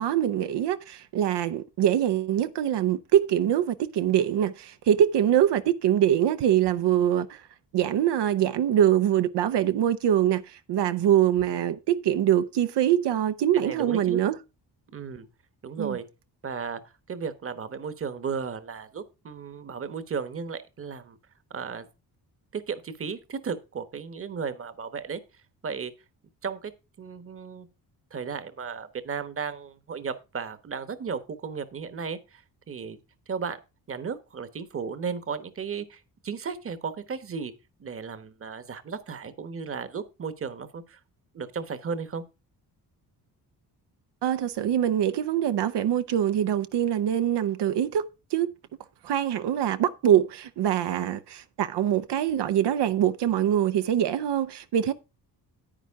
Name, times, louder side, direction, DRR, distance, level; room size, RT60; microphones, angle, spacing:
voice 1, 0.0-7.5 7.7-14.4 15.8-16.0 44.2-48.1 48.3-48.5 49.0-54.9, right 10 dB, 80° right, 0.8 m, -24 dB
voice 2, 13.5-14.2 14.9-15.3 15.6-16.1 16.4-21.2 21.5-21.9 22.5-25.2 25.6-25.9 26.4-26.7 27.0-27.7 28.1-33.0 33.3-33.6 33.9-37.5 37.8-41.0 41.3-42.2, right 6 dB, 35° right, 1.1 m, -35 dB
10.0 x 9.4 x 3.6 m
wide cardioid pair, 145°, 41 cm